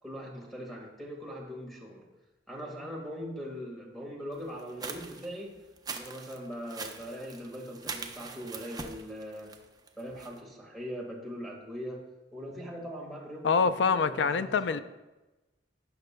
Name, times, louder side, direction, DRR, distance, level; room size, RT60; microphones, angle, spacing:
voice 1, 0.0-2.0 2.5-5.6 5.9-9.5 10.0-12.0 12.3-14.8, equal, ahead, -1 dB, 1.8 m, -41 dB
sound 1, 4.5-10.4, right 4 dB, 20° right, 0.6 m, -42 dB
voice 2, 13.4-14.8, left 5 dB, 75° left, 13 dB, 0.4 m, -25 dB
16.0 x 5.9 x 2.3 m, 1.1 s
head